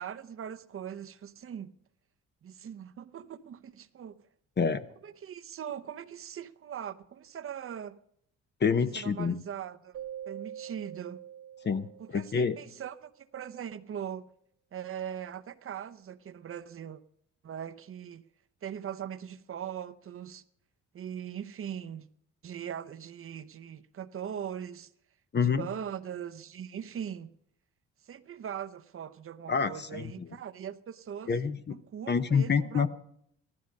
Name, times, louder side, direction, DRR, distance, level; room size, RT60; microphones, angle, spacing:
voice 1, 0.0-1.7 2.4-4.1 5.0-8.0 8.8-10.0 10.3-11.2 12.0-14.3 14.7-17.0 17.4-18.2 18.6-20.4 20.9-22.1 22.4-24.9 25.4-27.3 28.0-31.4 31.7-32.9, right 9 dB, 45° right, 0.7 m, -40 dB
voice 2, 8.6-9.4 11.6-11.9 12.1-12.6 25.3-25.7 29.5-30.1 31.3-31.7 32.1-32.9, left 6 dB, 35° left, 0.8 m, -27 dB
Keyboard (musical), 9.9-12.7, right 10 dB, 75° right, 1.3 m, -44 dB
15.0 x 12.5 x 5.3 m
cardioid pair, 90°, 30 cm